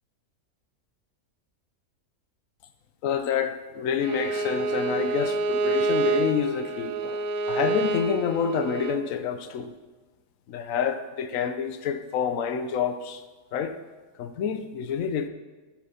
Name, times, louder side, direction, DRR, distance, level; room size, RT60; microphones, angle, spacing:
voice 1, 3.0-9.7 10.5-13.2 13.5-13.8 14.2-15.3, left 7 dB, 70° left, 1.1 m, -28 dB
Bowed string instrument, 4.0-9.0, right 3 dB, 85° right, 1.1 m, -27 dB
15.0 x 6.1 x 5.6 m
omnidirectional pair, 1.5 m